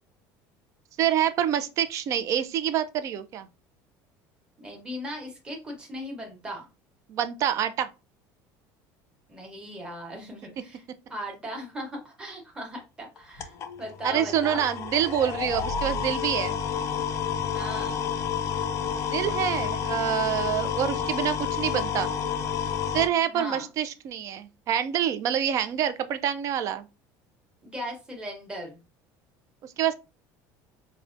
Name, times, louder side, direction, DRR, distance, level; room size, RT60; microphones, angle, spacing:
voice 1, 1.0-3.5 7.1-7.9 14.0-16.6 19.1-22.1 22.9-26.9 29.6-29.9, right 10 dB, 40° right, 0.4 m, -26 dB
voice 2, 4.6-6.7 9.3-10.8 11.1-14.6 17.5-18.0 23.3-23.7 27.6-28.8, equal, 10° right, 1.0 m, -38 dB
sound 1, 13.2-23.1, left 7 dB, 35° left, 0.3 m, -30 dB
4.6 x 2.1 x 2.5 m
cardioid pair, 155°, 8 cm